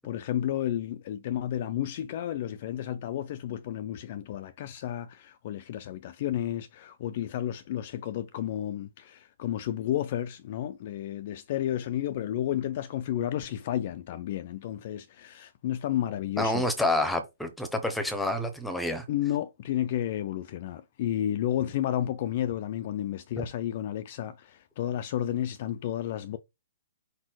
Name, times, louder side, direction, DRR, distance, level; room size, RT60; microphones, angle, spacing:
voice 1, 0.0-16.6 19.1-26.4, left 11 dB, 40° left, 0.5 m, -32 dB
voice 2, 16.4-19.0, left 1 dB, ahead, 0.9 m, -28 dB
4.8 x 4.3 x 4.6 m
hypercardioid pair, 165°, 0 cm